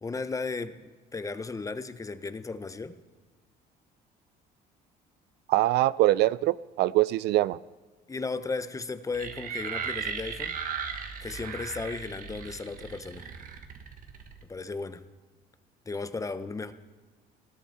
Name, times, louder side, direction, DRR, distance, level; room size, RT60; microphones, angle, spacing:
voice 1, 0.0-3.0 8.1-10.6 11.2-13.3 14.5-15.0 15.9-16.7, left 3 dB, 20° left, 11 dB, 0.8 m, -35 dB
voice 2, 5.5-7.6, right 16 dB, 80° right, 19 dB, 0.4 m, -23 dB
sound 1, 9.1-14.4, right 6 dB, 55° right, 1.5 m, -37 dB
19.5 x 15.0 x 4.3 m, 1.4 s
cardioid pair, 110°, 17 cm